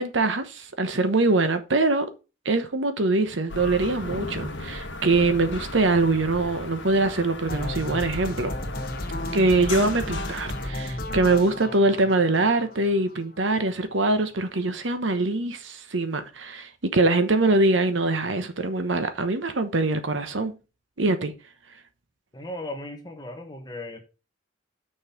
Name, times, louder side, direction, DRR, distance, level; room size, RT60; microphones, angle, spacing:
voice 1, 0.0-2.1 2.4-8.5 9.3-20.5 21.0-21.3, right 2 dB, 70° right, 1.0 m, -23 dB
sound 1, 3.5-10.7, left 2 dB, 70° left, 1.3 m, -36 dB
sound 2, 7.5-13.5, left 1 dB, 45° left, 1.3 m, -34 dB
voice 2, 22.3-24.0, left 1 dB, 20° left, 1.5 m, -36 dB
6.4 x 5.5 x 5.7 m
head